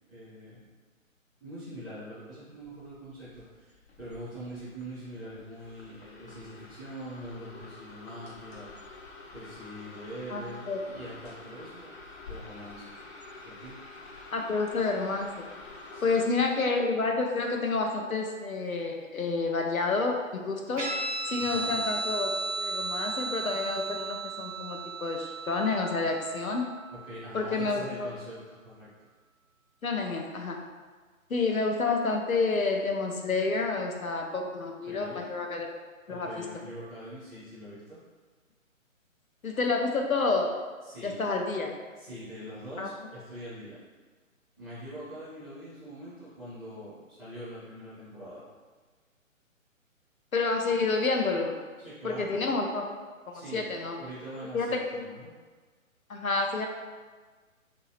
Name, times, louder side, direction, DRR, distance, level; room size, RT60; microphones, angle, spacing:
voice 1, 0.1-0.7 1.4-8.7 9.3-11.9 12.2-12.9 13.4-13.8 15.9-16.2 21.4-21.8 26.9-28.9 34.9-35.2 36.1-38.0 40.8-41.2 42.0-43.8 44.6-48.4 51.8-52.4 53.3-53.6 54.0-54.7 54.9-55.3, equal, ahead, -21 dB, 0.4 m, -43 dB
sound 1, 2.6-16.3, left 3 dB, 50° left, 0.6 m, -48 dB
voice 2, 10.3-10.8 14.3-15.5 16.0-20.9 21.3-22.3 22.6-26.7 27.3-28.1 29.8-30.6 31.3-35.7 36.1-36.3 39.4-40.5 41.0-41.7 42.8-42.9 50.3-51.6 52.0-52.8 53.3-54.0 54.5-55.0 56.1-56.7, left 3 dB, 90° left, 2 dB, 0.6 m, -29 dB
Guitar, 20.8-27.7, right 3 dB, 60° right, 0.9 m, -35 dB
3.0 x 2.6 x 3.1 m, 1.4 s
figure-of-eight pair, 140°, 41 cm